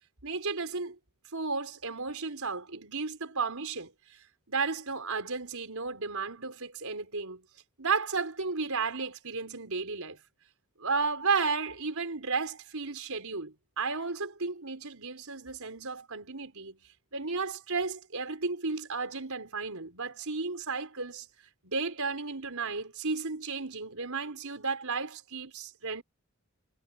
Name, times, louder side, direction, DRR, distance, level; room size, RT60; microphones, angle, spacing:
voice 1, 0.2-1.0 1.3-3.9 4.5-7.4 7.8-10.2 10.8-16.8 17.1-21.3 21.6-26.0, right 4 dB, 75° right, 4.5 m, -33 dB
head